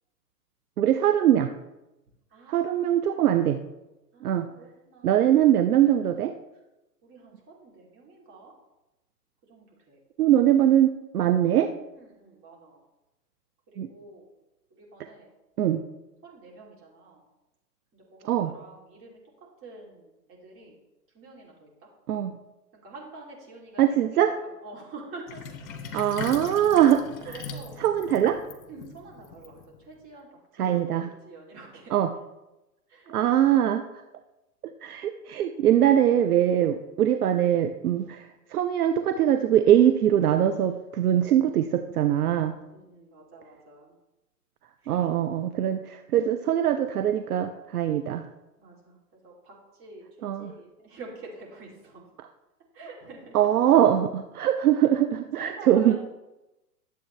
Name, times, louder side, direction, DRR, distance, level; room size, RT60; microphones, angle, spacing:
voice 1, 0.8-1.5 2.5-3.6 4.2-4.5 5.0-6.3 10.2-11.7 13.8-13.9 15.6-15.8 18.2-18.5 22.1-22.4 23.8-24.3 25.9-27.3 27.8-28.4 30.6-31.1 31.9-32.1 33.1-33.8 34.8-42.6 44.9-48.3 50.2-50.5 53.3-56.0, right 11 dB, 65° right, 8 dB, 0.7 m, -22 dB
voice 2, 2.3-3.0 4.1-5.3 7.0-8.5 9.5-10.0 11.9-12.8 13.7-14.2 14.7-15.3 16.2-17.2 17.9-19.2 19.6-20.8 21.1-21.9 22.7-25.5 25.9-26.2 27.2-27.8 28.7-30.3 30.6-32.0 32.9-33.2 42.7-44.0 44.8-45.2 48.6-52.0 52.7-53.4 55.4-56.0, right 3 dB, 25° right, -3 dB, 2.9 m, -47 dB
Sink (filling or washing), 25.3-30.0, left 5 dB, 55° left, 1.4 m, -40 dB
11.0 x 7.7 x 3.2 m, 0.98 s
figure-of-eight pair, 115°, 49 cm